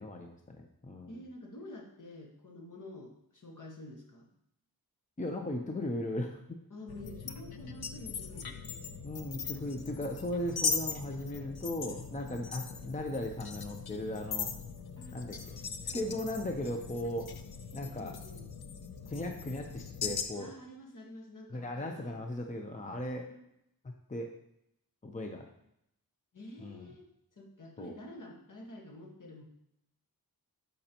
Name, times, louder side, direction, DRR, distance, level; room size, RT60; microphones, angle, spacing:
voice 1, 0.0-1.1 5.2-6.6 9.0-14.5 15.1-17.3 17.7-18.1 19.1-20.5 21.5-23.3 24.1-24.3 25.0-25.5 26.6-26.9 27.8-28.0, left 1 dB, 20° left, 3 dB, 0.7 m, -37 dB
voice 2, 1.1-4.3 6.7-9.0 15.0-15.3 18.0-18.5 20.0-22.2 23.3-23.4 26.3-27.1 27.3-29.4, left 1 dB, 55° left, 0 dB, 1.5 m, -49 dB
sound 1, 6.9-20.2, left 6 dB, 75° left, 0.7 m, -39 dB
12.0 x 5.4 x 2.9 m, 0.78 s
wide cardioid pair, 110°, 37 cm